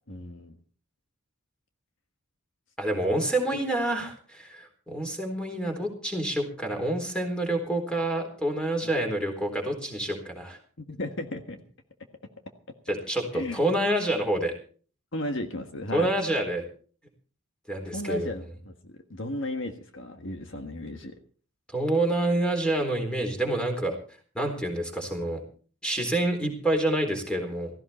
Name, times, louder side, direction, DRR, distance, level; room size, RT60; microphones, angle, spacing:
voice 1, 0.1-0.5 2.9-3.0 8.8-8.9 10.9-11.6 13.3-13.6 15.1-16.1 17.9-21.1, left 1 dB, 55° left, 6 dB, 1.5 m, -35 dB
voice 2, 2.8-10.6 12.9-14.5 15.9-16.6 17.7-18.3 21.7-24.0 24.3-25.4 25.8-27.7, right 1 dB, 5° left, 3 dB, 3.9 m, -27 dB
16.5 x 15.5 x 4.3 m, 0.42 s
head